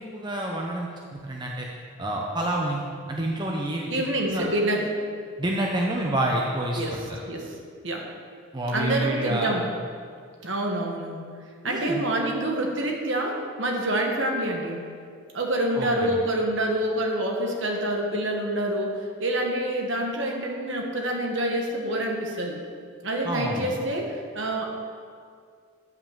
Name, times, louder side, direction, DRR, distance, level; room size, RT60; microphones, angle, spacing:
voice 1, 0.0-1.7 2.0-2.8 3.1-3.9 4.3-4.5 5.4-7.2 8.5-9.5 11.6-12.0 15.7-16.2 23.2-23.7, right 1 dB, 20° right, -1 dB, 0.7 m, -28 dB
voice 2, 3.9-4.9 6.8-6.9 7.3-7.5 7.8-8.0 8.7-9.7 10.4-11.2 11.6-14.8 15.3-22.6 23.0-24.7, right 1 dB, 60° right, 1 dB, 1.5 m, -27 dB
9.4 x 5.7 x 7.3 m, 2.1 s
head